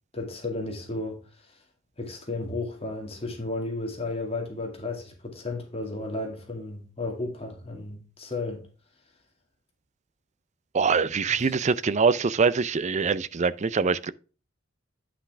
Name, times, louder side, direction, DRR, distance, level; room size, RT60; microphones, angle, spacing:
voice 1, 0.1-1.6 2.0-8.6 11.3-11.6, left 2 dB, 30° left, 2.3 m, -34 dB
voice 2, 10.7-14.1, right 5 dB, 35° right, 0.5 m, -24 dB
10.0 x 5.8 x 3.4 m
head